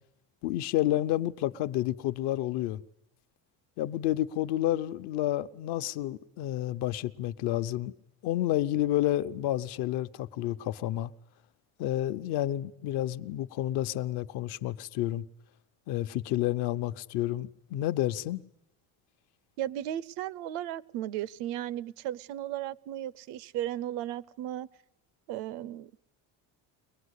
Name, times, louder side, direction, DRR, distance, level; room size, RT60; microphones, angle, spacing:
voice 1, 0.4-2.8 3.8-7.9 8.2-11.1 11.8-15.2 15.9-18.4, left 13 dB, 70° left, 0.9 m, -30 dB
voice 2, 19.6-24.7 25.3-25.9, right 12 dB, 80° right, 0.8 m, -35 dB
23.0 x 19.5 x 8.3 m
cardioid pair, 160°, 41 cm